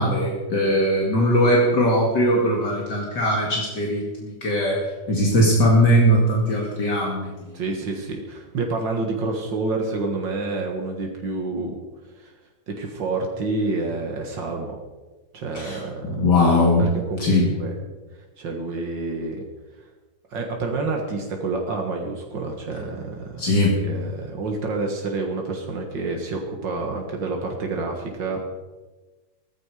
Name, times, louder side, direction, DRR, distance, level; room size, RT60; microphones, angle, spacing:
voice 1, 0.0-7.3 15.5-16.9 17.2-17.6 23.4-23.8, equal, 70° left, -2 dB, 3.0 m, -20 dB
voice 2, 7.5-11.8 12.2-12.3 12.7-14.8 15.3-16.0 16.8-17.7 18.4-19.4 20.3-28.5, right 3 dB, 80° right, 1 dB, 2.4 m, -28 dB
15.5 x 14.5 x 4.9 m, 1.2 s
omnidirectional pair, 2.0 m